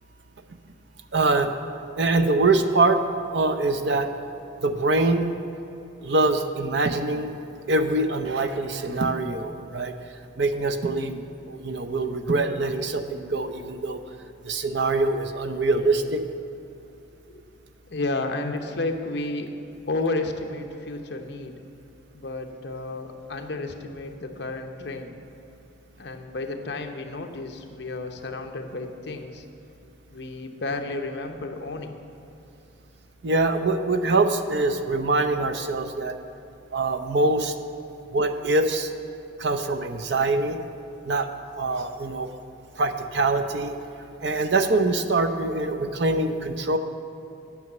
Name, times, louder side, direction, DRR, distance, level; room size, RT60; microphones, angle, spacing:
voice 1, 1.1-1.5 2.0-3.0 3.3-4.1 4.6-5.3 6.0-7.3 7.7-9.9 10.4-14.0 14.4-16.2 33.2-36.1 36.7-37.5 38.1-38.9 39.4-40.6 41.0-41.3 41.6-42.3 42.8-43.8 44.2-46.8, right 2 dB, 60° right, 8 dB, 0.6 m, -24 dB
voice 2, 17.9-19.5 19.9-21.5 22.1-25.2 26.0-29.4 30.1-31.9, left 2 dB, 60° left, 4 dB, 0.8 m, -32 dB
9.4 x 6.2 x 8.2 m, 2.8 s
head